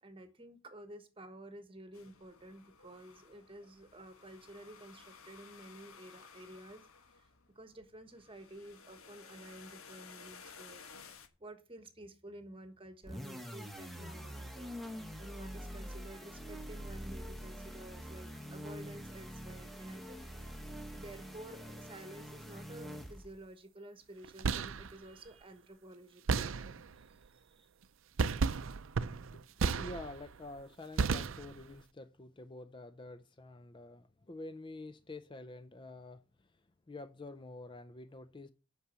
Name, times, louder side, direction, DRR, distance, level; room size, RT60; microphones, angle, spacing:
voice 1, 0.0-6.9 7.1-7.3 7.5-10.8 11.4-20.6 20.9-27.7, right 1 dB, 25° right, 1.3 m, -52 dB
sound 1, 1.9-11.3, left 5 dB, 85° left, 1.4 m, -56 dB
sound 2, 13.0-23.4, equal, ahead, 1.3 m, -45 dB
sound 3, 24.2-24.9 26.3-27.0 28.2-30.3 31.0-31.7, right 5 dB, 70° right, 0.5 m, -33 dB
voice 2, 29.3-36.5 36.9-38.5, left 2 dB, 25° left, 0.5 m, -48 dB
8.4 x 6.1 x 8.0 m
head